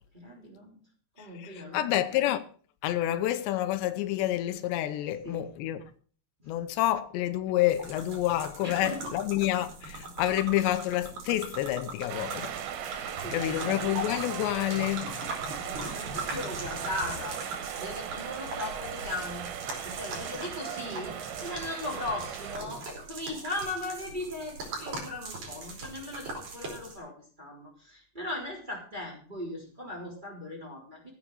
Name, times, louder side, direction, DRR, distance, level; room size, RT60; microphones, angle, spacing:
voice 1, 0.1-0.8 1.2-2.3 5.2-5.5 6.4-6.5 8.6-9.0 13.1-14.0 15.6-17.4 17.8-19.5 19.8-31.1, left 1 dB, 10° right, 3.1 m, -38 dB
voice 2, 1.4-2.4 2.8-5.8 6.5-12.5 12.9-13.0 13.3-15.1, left 14 dB, 90° left, 3.1 m, -28 dB
sound 1, 7.7-27.0, right 2 dB, 45° right, 4.5 m, -40 dB
sound 2, 12.1-22.6, right 9 dB, 80° right, 3.5 m, -38 dB
14.5 x 7.5 x 6.5 m
omnidirectional pair, 5.0 m